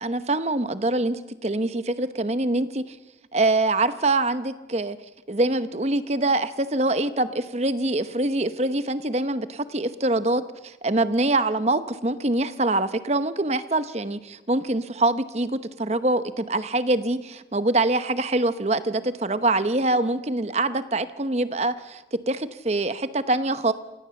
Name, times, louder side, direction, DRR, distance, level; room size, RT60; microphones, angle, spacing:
voice 1, 0.0-3.0 3.3-5.0 5.3-23.7, right 2 dB, 35° right, 12 dB, 0.9 m, -24 dB
27.0 x 17.5 x 7.1 m, 1.1 s
head